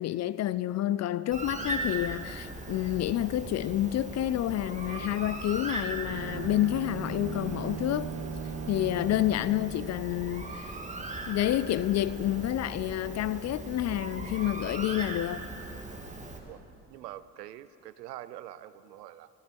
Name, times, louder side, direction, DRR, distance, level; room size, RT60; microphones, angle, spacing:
voice 1, 0.0-8.1 8.7-10.7 11.3-15.5, left 13 dB, 35° left, 0.4 m, -29 dB
Bird, 1.3-16.4, right 2 dB, 15° right, 2.2 m, -39 dB
Bowed string instrument, 6.1-10.1, right 6 dB, 35° right, 0.7 m, -39 dB
voice 2, 16.9-19.3, right 13 dB, 80° right, 0.6 m, -44 dB
15.5 x 15.0 x 5.3 m
hypercardioid pair, 55°, 47 cm